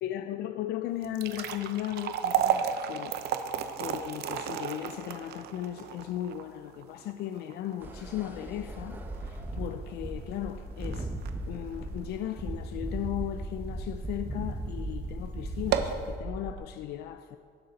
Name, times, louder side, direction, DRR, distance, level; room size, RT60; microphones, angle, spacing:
voice 1, 0.0-3.1 3.4-11.1 11.5-17.4, left 12 dB, 75° left, 9 dB, 0.5 m, -36 dB
sound 1, 0.9-13.2 13.7-13.8 14.5-14.6 15.0-15.1 15.5-16.1, right 8 dB, 75° right, 0.7 m, -34 dB
sound 2, 7.8-16.6, right 1 dB, 10° right, 1.1 m, -37 dB
17.0 x 6.8 x 4.0 m, 2.2 s
cardioid pair, 110°, 17 cm